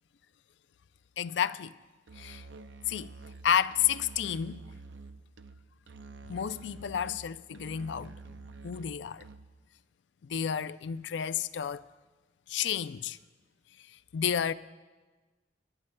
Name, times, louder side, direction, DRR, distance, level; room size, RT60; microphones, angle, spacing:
voice 1, 1.2-1.7 2.2-2.4 2.9-3.1 3.4-4.6 6.3-8.1 8.6-9.2 10.3-11.8 12.5-13.2 14.1-14.5, left 8 dB, 75° left, 0.4 m, -31 dB
Musical instrument, 2.1-9.7, right 3 dB, 90° right, 0.6 m, -48 dB
28.0 x 11.0 x 2.2 m
head